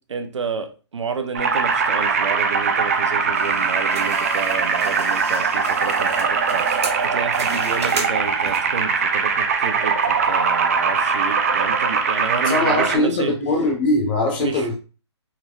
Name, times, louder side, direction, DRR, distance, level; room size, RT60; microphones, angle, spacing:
voice 1, 0.0-13.4 14.4-14.7, right 5 dB, 85° right, 0.6 m, -30 dB
sound 1, 1.4-13.0, right 5 dB, 30° right, 0.3 m, -21 dB
sound 2, 3.3-8.8, right 3 dB, 65° right, 1.2 m, -34 dB
voice 2, 12.5-14.8, left 2 dB, 20° left, 0.6 m, -21 dB
3.6 x 3.0 x 2.3 m
hypercardioid pair, 165°, 15 cm